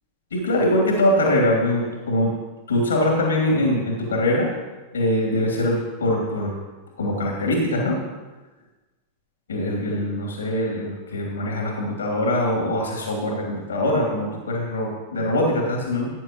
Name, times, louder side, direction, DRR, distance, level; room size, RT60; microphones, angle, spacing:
voice 1, 0.3-2.3 2.7-4.5 4.9-6.6 7.0-8.0 9.5-16.1, left 1 dB, 70° left, -1 dB, 2.9 m, -22 dB
17.0 x 9.7 x 3.1 m, 1.2 s
figure-of-eight pair, 90°, 0 cm